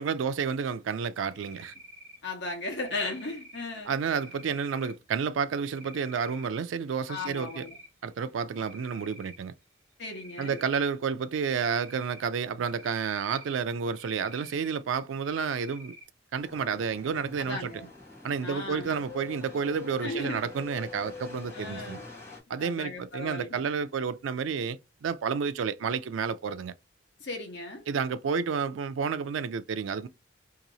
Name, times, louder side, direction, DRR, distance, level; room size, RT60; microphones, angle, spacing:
voice 1, 0.0-1.7 3.8-7.7 8.0-9.5 10.4-15.9 16.3-17.7 18.2-22.0 22.5-26.7 27.9-30.1, right 6 dB, 85° right, 0.4 m, -30 dB
Cricket, 1.3-2.2 2.7-3.6 4.1-4.9 5.6-6.5 6.9-7.9 8.2-9.4 10.0-10.8 11.3-12.2 12.7-13.5 13.9-14.8 15.2-16.0, right 1 dB, 10° right, 1.2 m, -49 dB
voice 2, 2.2-4.0 7.1-7.8 10.0-10.6 17.5-17.9 18.4-18.9 20.0-20.4 21.5-22.0 22.6-23.7 27.2-27.8, left 2 dB, 65° left, 1.1 m, -36 dB
sound 1, 16.4-22.4, left 4 dB, 15° left, 1.2 m, -45 dB
2.9 x 2.7 x 3.9 m
head